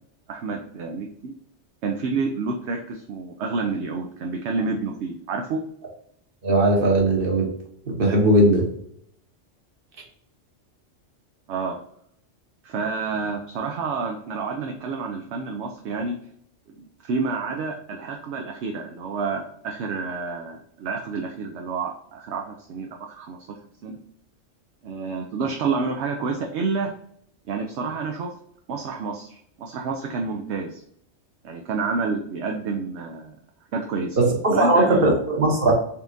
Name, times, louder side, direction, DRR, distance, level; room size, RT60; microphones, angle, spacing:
voice 1, 0.3-1.3 1.8-5.6 11.5-11.8 12.6-16.2 16.8-22.9 23.2-23.4 23.8-23.9 24.8-26.9 27.5-28.3 28.7-30.8 31.4-33.4 33.7-34.2 34.5-35.1, right 4 dB, 70° right, 2 dB, 0.9 m, -29 dB
voice 2, 6.4-7.5 8.0-8.6 34.2-35.7, right 1 dB, 50° right, -1 dB, 1.4 m, -18 dB
4.3 x 3.5 x 2.5 m, 0.69 s
omnidirectional pair, 1.2 m